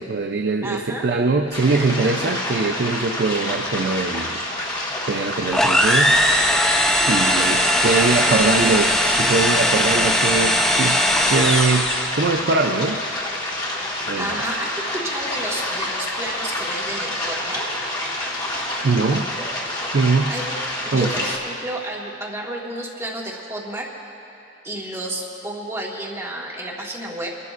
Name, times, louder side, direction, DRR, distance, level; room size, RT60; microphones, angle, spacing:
voice 1, 0.0-4.4 5.1-6.1 7.0-8.9 9.2-11.0 11.3-13.0 14.0-14.4 18.8-19.3 19.9-20.3 20.9-21.1, right 3 dB, 65° right, 4 dB, 0.5 m, -22 dB
voice 2, 0.6-1.1 5.8-6.0 6.9-8.9 9.2-9.4 14.1-14.7 14.9-17.7 20.3-20.6 20.8-23.9 24.6-27.3, right 1 dB, 15° right, -4 dB, 1.7 m, -31 dB
sound 1, 1.5-21.4, left 1 dB, 25° left, 1.8 m, -28 dB
sound 2, 5.5-12.2, equal, 5° left, 0.6 m, -19 dB
29.5 x 12.0 x 2.5 m, 2.8 s
head